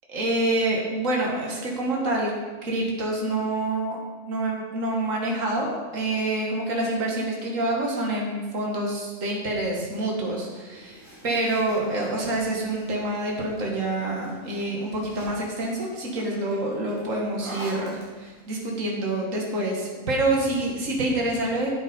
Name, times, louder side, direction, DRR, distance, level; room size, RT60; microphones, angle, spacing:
voice 1, 0.1-2.3 2.6-4.0 4.3-21.7, right 2 dB, 60° right, -1 dB, 2.3 m, -27 dB
sound 1, 10.7-18.6 19.8-20.6, equal, 20° right, 4.4 m, -46 dB
12.5 x 8.0 x 5.4 m, 1.3 s
omnidirectional pair, 1.5 m